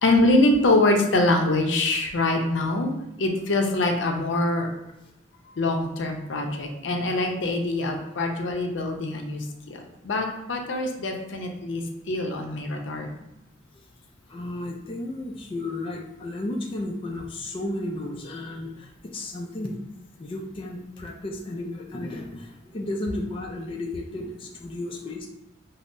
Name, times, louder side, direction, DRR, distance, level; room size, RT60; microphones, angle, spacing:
voice 1, 0.0-4.7 5.6-9.8 10.0-13.1, left 2 dB, 80° left, 3 dB, 0.5 m, -24 dB
voice 2, 14.3-19.8 20.2-25.3, left 1 dB, 30° left, 1 dB, 0.3 m, -33 dB
5.3 x 2.0 x 2.5 m, 0.88 s
head